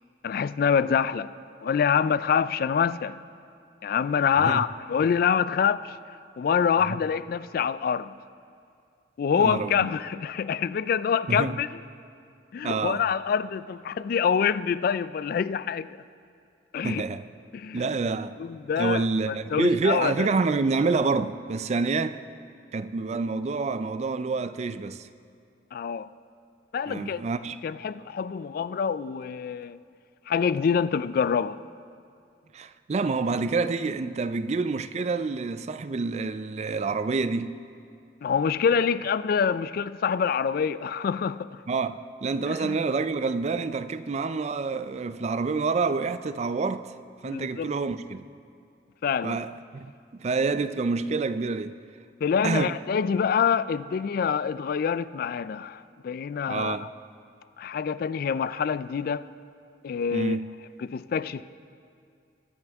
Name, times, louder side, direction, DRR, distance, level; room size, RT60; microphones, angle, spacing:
voice 1, 0.2-1.3 1.6-3.2 3.8-6.0 6.4-8.2 9.2-11.8 12.5-16.0 16.7-17.0 17.5-17.9 18.4-20.3 25.7-26.1 26.7-27.2 27.6-29.8 30.3-31.6 38.2-41.6 42.6-42.8 47.2-47.7 49.0-49.4 52.2-56.9 57.6-59.3 59.8-60.4 60.8-61.4, left 7 dB, 55° left, 0.3 m, -26 dB
voice 2, 9.4-9.9 11.3-11.6 12.6-13.0 16.8-17.2 17.7-18.4 18.8-22.2 22.7-25.1 26.9-27.6 32.5-37.6 41.7-46.9 47.2-48.3 49.2-51.8 52.4-52.8 56.5-56.9 60.1-60.5, right 4 dB, 40° right, 0.4 m, -27 dB
22.5 x 10.5 x 3.5 m
head